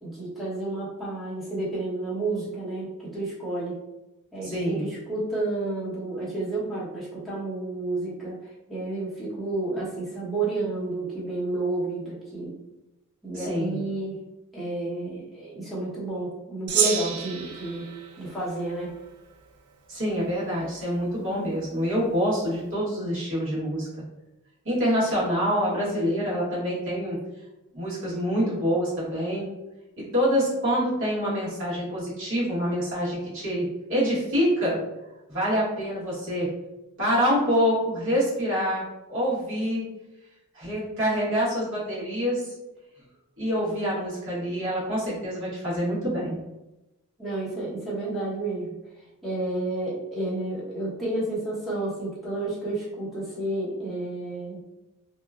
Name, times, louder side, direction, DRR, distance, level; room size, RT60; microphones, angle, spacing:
voice 1, 0.0-3.8 4.3-8.4 8.7-12.5 13.2-14.2 14.5-17.8 18.2-18.9 47.2-48.7 49.2-54.7, right 2 dB, ahead, -9 dB, 0.9 m, -31 dB
voice 2, 4.4-4.9 13.3-13.8 19.9-23.9 24.6-27.2 27.7-29.5 30.1-34.8 35.3-36.5 37.0-39.9 40.5-42.5 43.4-46.4, equal, 60° right, -7 dB, 1.3 m, -26 dB
Gong, 16.7-19.3, right 7 dB, 80° right, 0.4 m, -30 dB
2.8 x 2.2 x 2.3 m, 0.98 s
head